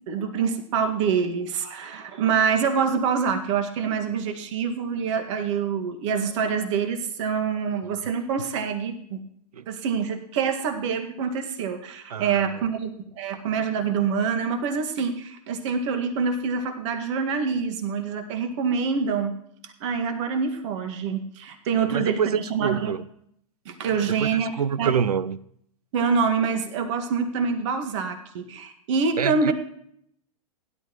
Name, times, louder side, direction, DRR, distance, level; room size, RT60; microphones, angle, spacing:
voice 1, 0.1-9.2 9.7-19.3 19.8-22.9 23.7-24.5 24.8-24.9 25.9-29.5, right 6 dB, 50° right, 6 dB, 1.9 m, -26 dB
voice 2, 12.1-12.7 21.7-23.0 23.9-25.4 29.2-29.5, right 7 dB, 80° right, 18 dB, 0.6 m, -27 dB
17.0 x 11.0 x 3.1 m, 0.69 s
hypercardioid pair, 110°, 19 cm